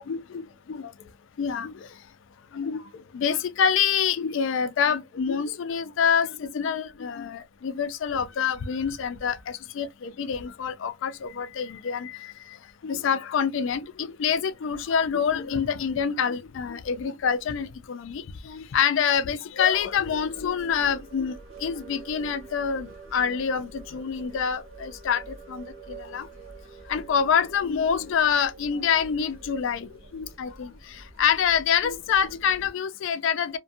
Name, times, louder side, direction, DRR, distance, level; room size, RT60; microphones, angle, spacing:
voice 1, 0.1-0.4 0.7-0.9 1.4-1.7 2.5-2.8 3.1-9.4 9.8-12.1 12.8-21.3 21.6-25.2 25.5-25.6 26.0-26.3 26.9-30.7 31.2-33.6, left 7 dB, 60° left, 0.3 m, -26 dB
sound 1, 19.7-32.7, right 3 dB, 65° right, 0.7 m, -46 dB
2.5 x 2.1 x 2.6 m
head